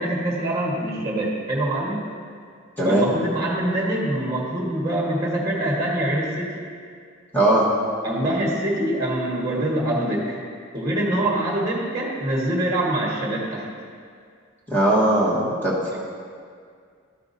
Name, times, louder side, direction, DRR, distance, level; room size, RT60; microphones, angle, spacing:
voice 1, 0.0-2.0 2.8-6.5 8.0-10.4 10.7-13.6 15.9-16.0, right 1 dB, 15° right, -4 dB, 1.4 m, -24 dB
voice 2, 2.8-3.1 7.3-7.7 14.7-16.0, right 1 dB, 10° left, -8 dB, 1.4 m, -19 dB
13.0 x 5.8 x 2.7 m, 2.1 s
head